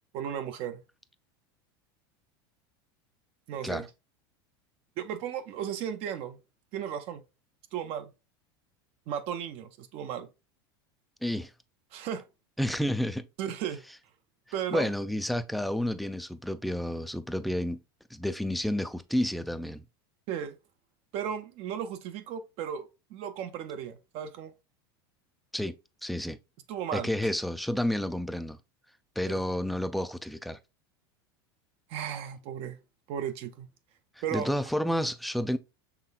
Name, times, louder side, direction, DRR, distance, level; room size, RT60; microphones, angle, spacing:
voice 1, 0.1-0.8 3.5-3.9 5.0-6.4 6.7-7.2 7.7-8.1 9.1-10.3 11.9-12.2 13.4-13.8 14.5-14.9 20.3-20.6 21.1-24.5 26.7-27.1 29.2-29.4 31.9-32.8 33.1-33.7 34.2-34.5, right 9 dB, 50° right, 0.5 m, -35 dB
voice 2, 12.6-13.2 14.7-17.8 18.1-19.8 25.5-25.8 26.0-26.4 26.9-28.6 29.2-30.6 34.3-35.6, left 1 dB, ahead, 0.3 m, -30 dB
5.8 x 3.2 x 2.2 m
supercardioid pair, 120°, 13 cm